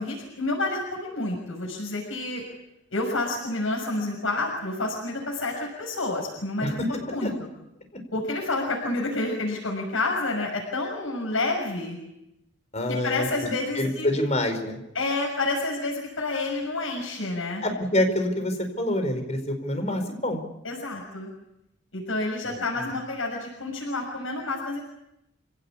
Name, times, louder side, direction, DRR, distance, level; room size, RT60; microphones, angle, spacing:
voice 1, 0.0-2.4 2.9-7.3 8.1-12.0 12.9-14.1 14.9-17.6 20.6-21.3 21.9-24.8, left 2 dB, 90° left, -2 dB, 6.5 m, -29 dB
voice 2, 12.7-13.5 13.8-14.8 17.6-20.4, left 1 dB, 35° left, 7 dB, 4.8 m, -26 dB
28.0 x 17.5 x 8.5 m, 0.87 s
head